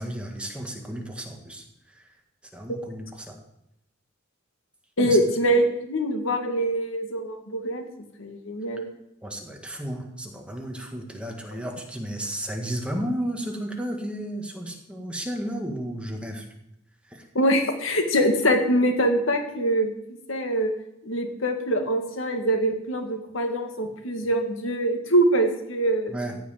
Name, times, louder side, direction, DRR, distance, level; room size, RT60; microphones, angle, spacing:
voice 1, 0.0-1.6 1.9-2.0 2.5-3.4 5.0-5.2 9.2-16.5 17.1-17.2 26.1-26.4, right 1 dB, 5° right, 2 dB, 1.8 m, -33 dB
voice 2, 5.0-7.9 8.2-8.9 17.4-19.9 20.3-20.7 21.0-26.1, right 1 dB, 90° left, 5 dB, 2.0 m, -24 dB
14.5 x 5.7 x 9.2 m, 0.84 s
head